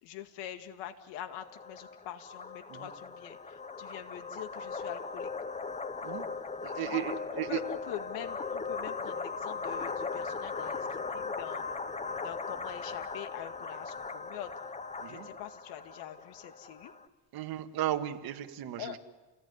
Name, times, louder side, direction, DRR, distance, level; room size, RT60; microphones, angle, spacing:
voice 1, 0.0-5.3 6.8-7.0 7.3-11.6 12.2-14.6 15.1-16.9 18.8-19.0, left 11 dB, 90° left, 8 dB, 2.1 m, -44 dB
sound 1, 1.3-17.1, left 4 dB, 15° left, 1.1 m, -39 dB
voice 2, 6.6-7.6 15.0-15.3 17.3-19.0, right 12 dB, 60° right, 6 dB, 2.1 m, -35 dB
29.5 x 18.5 x 9.7 m, 1.3 s
cardioid pair, 125°, 41 cm